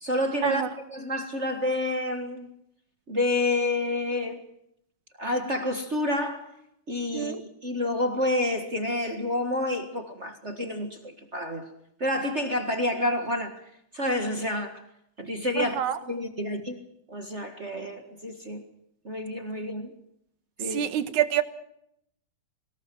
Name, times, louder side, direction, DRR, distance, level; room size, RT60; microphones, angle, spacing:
voice 1, 0.0-2.5 3.1-4.4 5.2-6.5 6.9-11.7 12.0-13.6 13.9-14.8 15.2-16.8 17.1-18.6 19.0-19.9 20.6-20.8, left 1 dB, 30° right, 1.5 m, -29 dB
voice 2, 15.6-16.0 20.7-21.4, right 10 dB, 90° right, 2.7 m, -26 dB
24.0 x 19.5 x 7.7 m
omnidirectional pair, 3.3 m